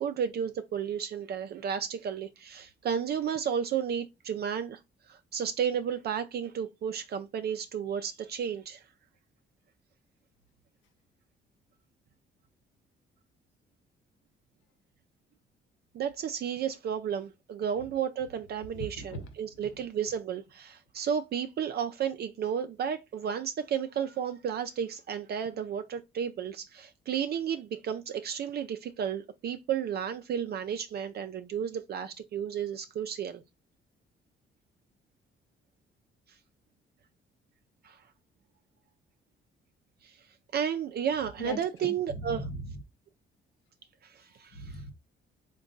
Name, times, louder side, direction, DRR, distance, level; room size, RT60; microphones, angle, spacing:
voice 1, 0.0-4.8 5.1-8.8 15.9-33.4 37.8-38.0 40.0-40.2 40.5-42.4 44.0-44.8, right 8 dB, 55° right, 0.4 m, -33 dB
voice 2, 18.7-19.7 41.4-42.8 44.5-44.9, left 1 dB, 80° left, 0.9 m, -39 dB
3.6 x 2.2 x 3.8 m
cardioid pair, 90°, 20 cm